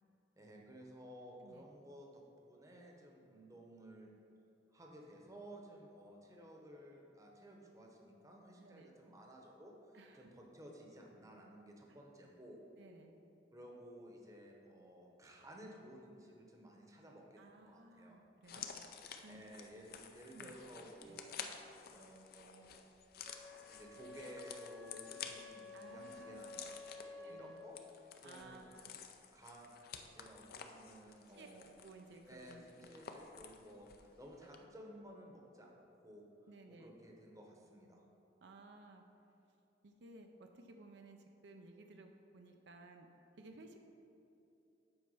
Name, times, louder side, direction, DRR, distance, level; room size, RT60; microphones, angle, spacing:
voice 1, 0.4-4.1 4.7-12.6 13.5-18.2 19.3-21.4 21.9-22.7 23.7-27.8 28.2-28.6 29.3-29.7 30.0-31.7 32.3-36.2 36.7-38.0, equal, 20° right, 0 dB, 0.9 m, -55 dB
voice 2, 8.6-8.9 9.9-10.3 12.8-13.1 17.4-18.7 19.2-19.4 20.3-20.5 21.0-21.2 25.7-26.5 27.2-27.6 28.2-28.9 31.3-31.5 31.8-32.9 36.5-36.9 38.4-39.0 39.8-43.1 43.4-43.8, right 2 dB, 70° right, 4 dB, 0.5 m, -57 dB
sound 1, 18.4-34.1 34.4-34.6, left 7 dB, 55° left, 0.5 m, -52 dB
Wind instrument woodwind instrument, 23.2-27.7, left 4 dB, 5° left, 0.5 m, -52 dB
7.9 x 4.5 x 5.5 m, 2.8 s
head